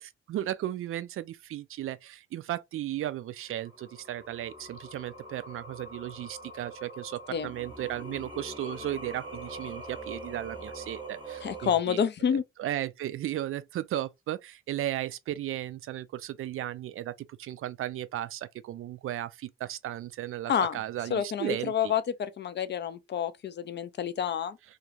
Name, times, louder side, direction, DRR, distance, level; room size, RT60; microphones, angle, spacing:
voice 1, 0.0-12.0 12.3-21.9, right 13 dB, 40° right, 0.4 m, -35 dB
Singing, 3.5-11.7, right 1 dB, 15° right, 0.9 m, -43 dB
voice 2, 11.4-12.4 20.5-20.8 21.1-24.6, left 8 dB, 35° left, 0.5 m, -29 dB
2.6 x 2.4 x 3.1 m
figure-of-eight pair, 40°, 33 cm